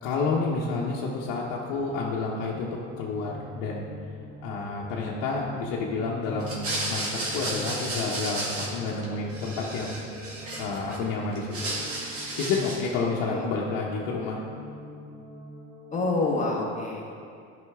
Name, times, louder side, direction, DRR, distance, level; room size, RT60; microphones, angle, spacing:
voice 1, 0.0-2.7 3.0-3.9 4.4-10.0 10.6-11.8 12.4-14.4, left 4 dB, 70° left, -5 dB, 1.1 m, -30 dB
sound 1, 1.7-16.5, equal, 20° right, 1.8 m, -46 dB
sound 2, 6.4-9.0 9.3-11.0 11.3-12.9, right 2 dB, 40° right, 1.9 m, -33 dB
voice 2, 15.9-17.1, left 2 dB, 20° left, -2 dB, 1.6 m, -27 dB
11.0 x 5.5 x 3.6 m, 2.3 s
supercardioid pair, 105°, 36 cm